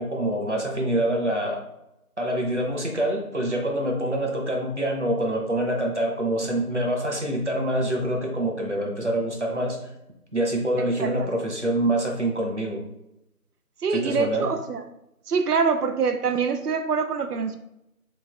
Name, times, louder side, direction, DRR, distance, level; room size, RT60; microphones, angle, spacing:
voice 1, 0.0-1.6 2.2-9.9 10.3-12.8 13.9-14.5, right 1 dB, 50° right, 0 dB, 0.8 m, -26 dB
voice 2, 11.0-11.4 13.8-14.8 15.3-17.6, right 5 dB, 85° right, 8 dB, 0.5 m, -25 dB
3.0 x 2.4 x 3.5 m, 0.86 s
figure-of-eight pair, 175°, 45 cm